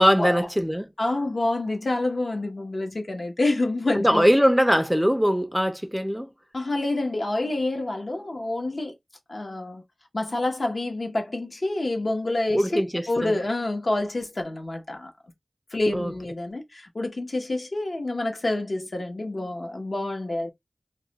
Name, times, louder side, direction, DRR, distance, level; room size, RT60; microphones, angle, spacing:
voice 1, 0.0-0.9 3.9-6.3 12.5-13.3 15.9-16.1, equal, ahead, 0.4 m, -21 dB
voice 2, 1.0-4.3 6.5-8.9 9.3-9.8 10.1-12.8 13.1-15.1 15.7-20.5, left 2 dB, 60° left, 0.8 m, -27 dB
2.3 x 2.2 x 3.9 m
wide cardioid pair, 65°, 0 cm